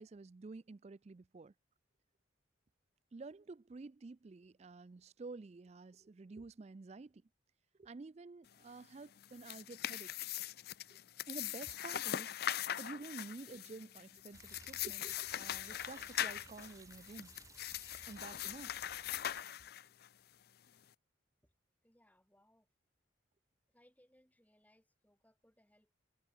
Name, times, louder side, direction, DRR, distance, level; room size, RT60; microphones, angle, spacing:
voice 1, 0.0-1.5 3.1-7.2 7.8-10.1 10.9-11.0 11.3-12.3 12.8-17.3 18.1-18.7, right 3 dB, 35° right, 0.4 m, -50 dB
sound 1, 9.2-20.1, left 11 dB, 50° left, 0.4 m, -41 dB
sound 2, 14.3-19.4, right 3 dB, 15° right, 2.8 m, -59 dB
voice 2, 21.8-22.7 23.7-26.0, equal, 10° left, 4.2 m, -70 dB
head